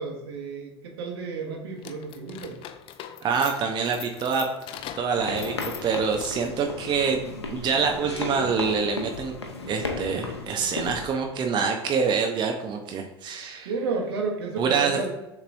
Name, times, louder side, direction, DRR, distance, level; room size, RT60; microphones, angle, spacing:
voice 1, 0.0-2.6 13.6-15.1, right 4 dB, 70° right, 1 dB, 1.0 m, -31 dB
sound 1, 1.8-6.6, left 10 dB, 40° left, 0.4 m, -41 dB
voice 2, 3.2-4.5 5.0-9.3 9.7-13.7 14.6-15.0, right 5 dB, 35° right, 3 dB, 0.6 m, -26 dB
sound 2, 5.1-11.1, left 3 dB, 85° left, 0.6 m, -34 dB
6.7 x 3.0 x 2.6 m, 1.0 s
figure-of-eight pair, 70°, 14 cm